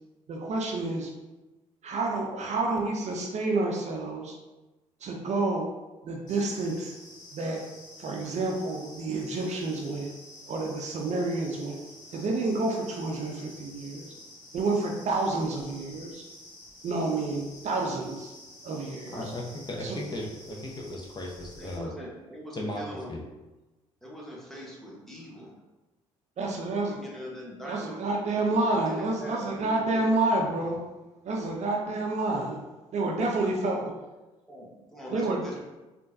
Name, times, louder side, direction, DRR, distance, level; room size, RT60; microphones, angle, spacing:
voice 1, 0.3-1.1 1.8-4.4 5.0-5.7 6.0-6.9 7.3-7.6 8.0-10.1 10.5-11.8 12.1-14.1 14.5-16.2 16.8-18.3 18.6-19.2 19.8-20.0 26.4-27.0 27.6-30.8 31.2-32.6 32.9-33.9 35.1-35.6, right 2 dB, 45° right, 0 dB, 0.5 m, -29 dB
sound 1, 6.3-21.8, left 1 dB, 50° left, 1.4 m, -49 dB
voice 2, 19.1-21.9 22.5-22.8 23.1-23.2, left 1 dB, 25° left, -1 dB, 0.7 m, -36 dB
voice 3, 21.6-23.2 24.0-25.5 26.9-28.1 28.6-30.0 32.3-32.5 34.5-35.6, equal, ahead, -4 dB, 1.1 m, -42 dB
3.7 x 2.5 x 2.6 m, 1.1 s
hypercardioid pair, 50°, 16 cm